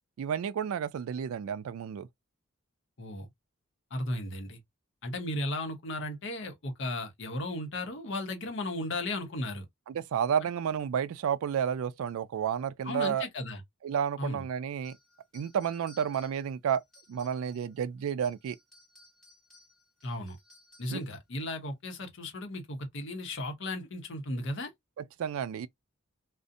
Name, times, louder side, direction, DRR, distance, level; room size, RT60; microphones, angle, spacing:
voice 1, 0.2-2.1 9.9-13.3 13.8-15.0 15.3-16.8 17.1-18.6 20.9-21.0 25.0-25.7, right 8 dB, 75° right, 0.3 m, -31 dB
voice 2, 3.9-4.6 5.0-9.6 12.8-13.6 14.2-14.4 20.0-20.4 20.8-24.7, left 1 dB, 55° left, 0.7 m, -35 dB
sound 1, 14.8-17.7 18.1-21.1, left 2 dB, 5° left, 1.3 m, -59 dB
2.6 x 2.0 x 2.5 m
head